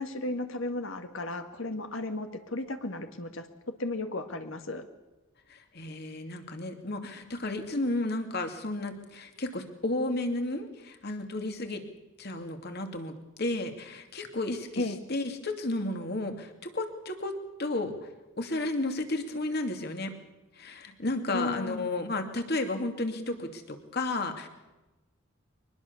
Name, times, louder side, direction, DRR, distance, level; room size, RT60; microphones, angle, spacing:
voice 1, 0.0-3.5 3.8-4.9 14.8-15.0 21.3-21.9, left 2 dB, 70° left, 7 dB, 1.8 m, -34 dB
voice 2, 5.5-11.9 12.2-18.0 18.4-20.1 20.5-24.5, left 2 dB, 50° left, 6 dB, 2.6 m, -33 dB
24.0 x 20.5 x 7.0 m, 1.1 s
head